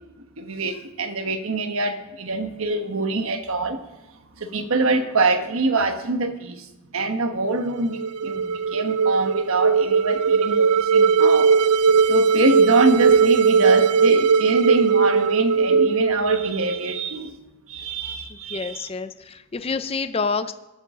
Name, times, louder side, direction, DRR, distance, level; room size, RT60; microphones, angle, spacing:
voice 1, 0.4-3.8 4.4-6.7 6.9-11.5 11.9-17.4 17.7-18.9, right 2 dB, 65° right, 7 dB, 1.3 m, -24 dB
sound 1, 7.8-17.0, right 5 dB, 85° right, 0.4 m, -18 dB
voice 2, 18.5-20.5, left 4 dB, 25° left, 11 dB, 0.5 m, -27 dB
22.5 x 8.6 x 3.8 m, 1.1 s
head